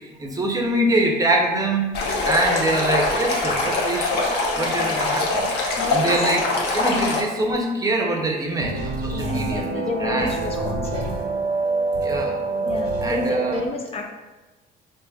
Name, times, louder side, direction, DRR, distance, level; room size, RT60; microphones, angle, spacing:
voice 1, 0.2-2.0 2.2-4.3 4.6-5.5 5.9-6.5 6.7-10.7 12.0-12.7 13.0-13.7, right 2 dB, 20° right, 1 dB, 0.6 m, -24 dB
Stream, 1.9-7.2, left 2 dB, 75° left, 0.7 m, -23 dB
voice 2, 4.5-5.0 5.8-6.3 9.1-11.2 12.6-14.1, left 3 dB, 35° left, 2 dB, 0.4 m, -31 dB
sound 1, 8.6-13.6, right 3 dB, 75° right, 0.7 m, -26 dB
4.8 x 2.7 x 2.3 m, 1.2 s
cardioid pair, 110°, 17 cm